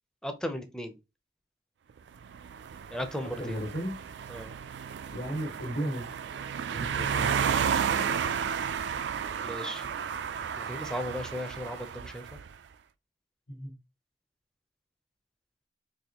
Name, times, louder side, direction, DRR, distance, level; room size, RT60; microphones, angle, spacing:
voice 1, 0.2-1.0 2.9-3.6 4.3-4.5 9.4-9.8 10.6-12.4, equal, 5° left, 0.5 m, -36 dB
sound 1, 2.2-12.5, right 7 dB, 70° right, 0.3 m, -32 dB
voice 2, 3.4-4.0 5.1-6.0 6.7-8.2 13.5-13.7, equal, 55° left, 1.3 m, -35 dB
4.1 x 2.9 x 2.9 m
head